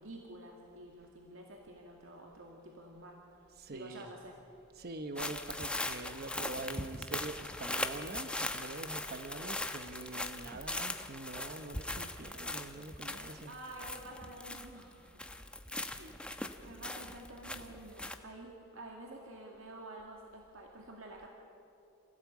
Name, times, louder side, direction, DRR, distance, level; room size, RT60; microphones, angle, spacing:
voice 1, 0.0-3.2 3.7-4.4 13.5-15.1 15.7-16.2 16.6-21.3, right 1 dB, 75° right, 0 dB, 2.2 m, -49 dB
voice 2, 3.6-4.1 4.8-13.5, right 2 dB, 50° right, 8 dB, 1.0 m, -44 dB
sound 1, 5.2-14.9 15.2-18.2, left 2 dB, 5° left, 0.9 m, -40 dB
28.0 x 15.5 x 8.4 m, 2.9 s
head